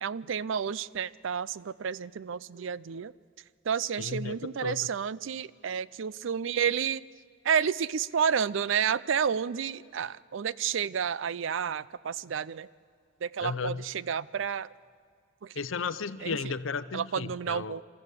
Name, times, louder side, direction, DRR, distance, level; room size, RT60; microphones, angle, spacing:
voice 1, 0.0-3.1 3.6-7.0 7.4-12.7 13.2-14.7 15.4-15.6 16.2-16.5 16.9-17.8, right 7 dB, 65° right, 20 dB, 0.4 m, -30 dB
voice 2, 4.0-4.4 4.6-4.9 13.4-13.8 15.6-17.8, left 5 dB, 70° left, 15 dB, 0.6 m, -34 dB
26.0 x 13.5 x 8.2 m, 2.2 s
head